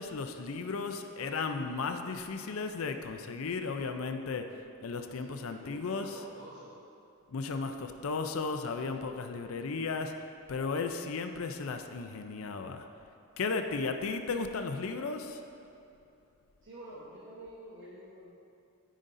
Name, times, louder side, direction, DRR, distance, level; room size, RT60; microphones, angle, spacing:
voice 1, 0.0-6.2 7.3-10.2 10.5-12.9 13.4-15.4, left 4 dB, 65° left, 6 dB, 0.5 m, -35 dB
voice 2, 5.1-6.8 16.6-18.3, right 1 dB, 55° right, -8 dB, 1.0 m, -49 dB
13.5 x 5.1 x 2.6 m, 2.7 s
head